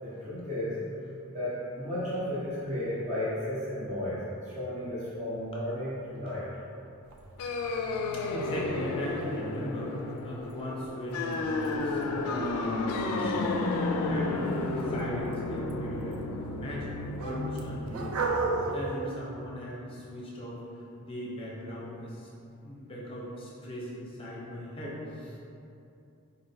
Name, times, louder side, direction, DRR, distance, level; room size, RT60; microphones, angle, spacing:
voice 1, 0.0-0.8 1.3-6.5, left 1 dB, 30° right, -10 dB, 0.6 m, -33 dB
sound 1, 7.1-18.7, right 3 dB, 70° right, 0.3 m, -39 dB
sound 2, 7.4-17.9, left 3 dB, 85° left, 0.3 m, -32 dB
voice 2, 8.1-13.6 14.0-14.5 14.8-16.9 17.2-18.2 18.7-22.3 22.6-25.4, equal, 25° left, -5 dB, 0.6 m, -38 dB
4.0 x 3.0 x 2.7 m, 2.7 s
head